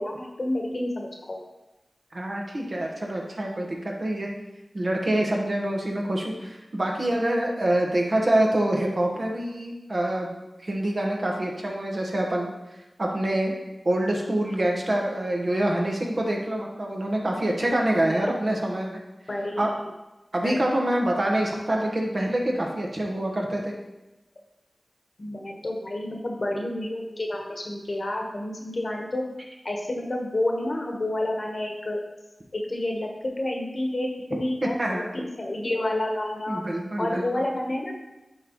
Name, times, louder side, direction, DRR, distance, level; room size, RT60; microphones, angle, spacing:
voice 1, 0.0-1.4 17.9-18.3 19.3-19.9 20.4-20.6 25.2-29.2 29.6-32.0 32.5-33.1 33.4-36.6 37.0-37.9, left 1 dB, 60° left, 1 dB, 1.2 m, -29 dB
voice 2, 2.1-4.3 4.7-10.3 10.6-12.5 13.0-13.6 13.8-19.0 19.6-19.7 20.3-23.7 34.6-35.1 36.5-37.3, right 1 dB, 60° right, -1 dB, 1.3 m, -26 dB
10.5 x 3.7 x 3.1 m, 1.0 s
cardioid pair, 45°, 0 cm